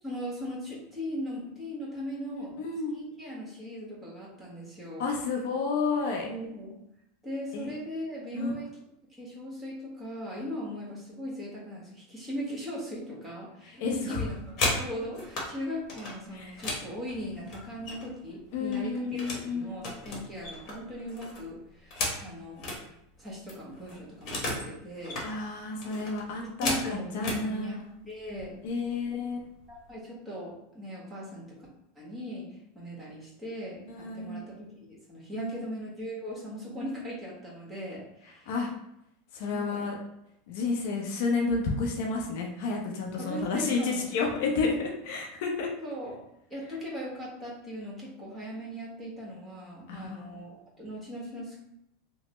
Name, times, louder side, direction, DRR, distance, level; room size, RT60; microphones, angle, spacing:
voice 1, 0.0-2.6 2.9-5.1 6.2-6.8 7.2-8.7 9.2-22.6 23.2-25.2 26.4-28.6 29.1-29.2 29.7-31.6 31.9-38.5 39.4-39.8 43.2-44.1 45.8-46.2 46.5-51.6, equal, 15° right, -5 dB, 1.3 m, -39 dB
voice 2, 2.4-3.0 5.0-6.3 7.5-7.7 8.3-8.5 13.8-14.2 16.3-16.5 18.5-19.8 25.2-27.8 28.6-29.4 33.9-34.4 35.3-35.6 38.5-38.7 39.3-40.0 40.5-45.7 49.9-50.2, left 4 dB, 65° left, 0 dB, 0.6 m, -31 dB
sound 1, 14.2-15.5 15.9-18.2 18.5-19.5 19.8-22.8 23.2-23.3 23.5-24.7 25.0-25.3 25.8-27.4 28.3-28.4 28.8-29.1 29.4-29.9, left 2 dB, 50° left, 1.1 m, -34 dB
3.1 x 2.1 x 3.0 m, 0.79 s
hypercardioid pair, 105°, 0 cm